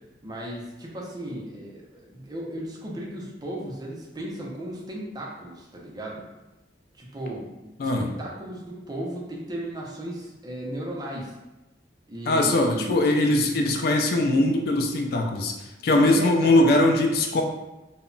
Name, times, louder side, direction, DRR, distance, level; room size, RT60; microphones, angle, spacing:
voice 1, 0.2-6.2 7.0-11.3 12.1-13.1 15.9-16.7, right 1 dB, 20° right, -3 dB, 0.4 m, -36 dB
voice 2, 12.3-15.5 15.8-17.4, left 1 dB, 55° left, 3 dB, 0.3 m, -21 dB
2.1 x 2.0 x 3.7 m, 1.0 s
head